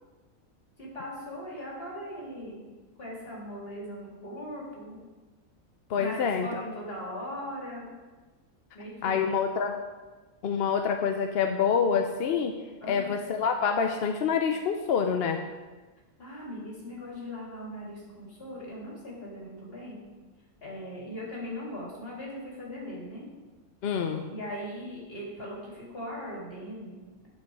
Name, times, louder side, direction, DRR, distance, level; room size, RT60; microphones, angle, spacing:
voice 1, 0.8-2.7 3.0-5.0 5.9-7.9 8.7-9.2 12.8-13.1 16.2-20.0 20.6-23.2 24.3-27.3, equal, 45° left, -4 dB, 2.8 m, -39 dB
voice 2, 5.9-6.5 9.0-9.8 10.4-12.5 12.9-15.4 23.8-24.2, left 6 dB, 60° left, 5 dB, 0.7 m, -26 dB
9.2 x 6.8 x 4.6 m, 1.3 s
omnidirectional pair, 1.4 m